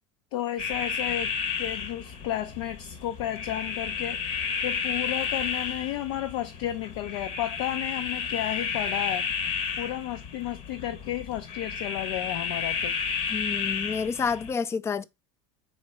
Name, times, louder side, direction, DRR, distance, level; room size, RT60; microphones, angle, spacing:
voice 1, 0.3-1.3 1.6-4.2 4.6-9.3 9.8-12.9, left 13 dB, 75° left, 0.6 m, -32 dB
sound 1, 0.6-14.5, left 6 dB, 50° left, 0.9 m, -32 dB
voice 2, 13.3-15.0, left 5 dB, 20° left, 0.3 m, -29 dB
4.3 x 2.8 x 4.3 m
supercardioid pair, 105°, 15 cm